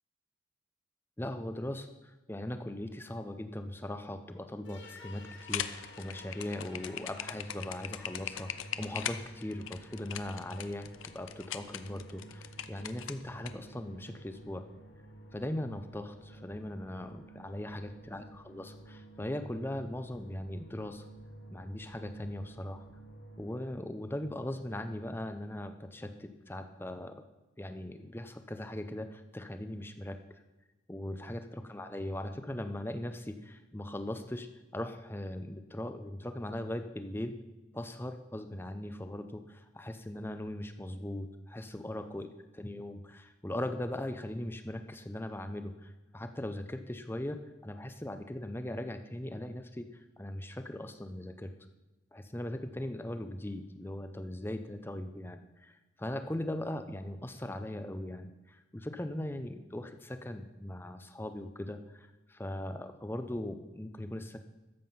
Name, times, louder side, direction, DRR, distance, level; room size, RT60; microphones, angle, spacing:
voice 1, 1.2-8.5 8.8-14.7 15.3-21.1 21.5-22.9 23.4-27.2 27.6-30.4 30.9-34.5 34.7-37.4 37.7-42.3 42.5-51.5 52.1-64.4, left 1 dB, 10° left, 8 dB, 0.6 m, -39 dB
sound 1, 4.6-23.6, right 1 dB, 65° left, 1.6 m, -52 dB
sound 2, 5.4-13.5, left 10 dB, 80° left, 0.6 m, -40 dB
13.0 x 7.6 x 5.6 m, 1.1 s
head